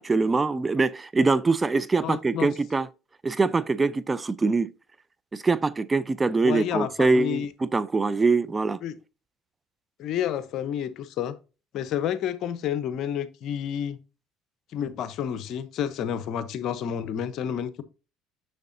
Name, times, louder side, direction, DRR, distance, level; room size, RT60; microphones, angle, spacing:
voice 1, 0.0-2.9 3.2-4.7 5.3-8.8, right 3 dB, 20° right, 0.4 m, -23 dB
voice 2, 2.0-2.5 6.4-7.5 8.8-8.9 10.0-11.3 11.7-14.0 14.7-17.8, left 9 dB, 60° left, 0.8 m, -30 dB
6.8 x 6.4 x 2.6 m
hypercardioid pair, 80°, 0 cm